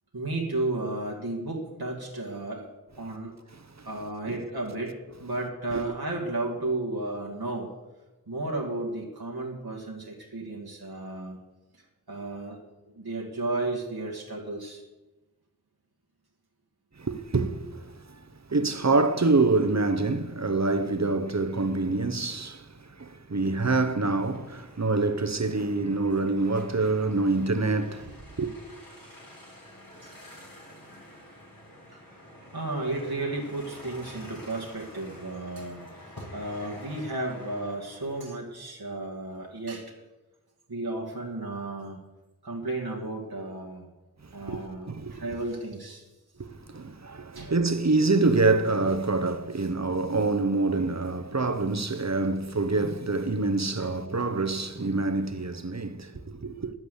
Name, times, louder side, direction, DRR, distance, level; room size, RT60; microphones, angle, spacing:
voice 1, 0.1-2.7 3.0-3.3 3.9-7.7 8.3-11.4 12.1-12.6 12.9-14.8 30.0-30.1 31.9-32.0 32.5-39.9 40.7-42.0 42.4-43.9 44.3-46.0 47.4-47.5 53.8-53.9, right 2 dB, 90° right, 1.9 m, -33 dB
voice 2, 17.0-18.2 18.5-22.7 23.0-28.5 44.5-44.6 44.9-45.2 46.4-56.7, right 3 dB, 45° right, 0.9 m, -26 dB
sound 1, 23.3-38.2, left 1 dB, 65° left, 4.1 m, -48 dB
10.5 x 8.4 x 8.0 m
wide cardioid pair, 50°, 36 cm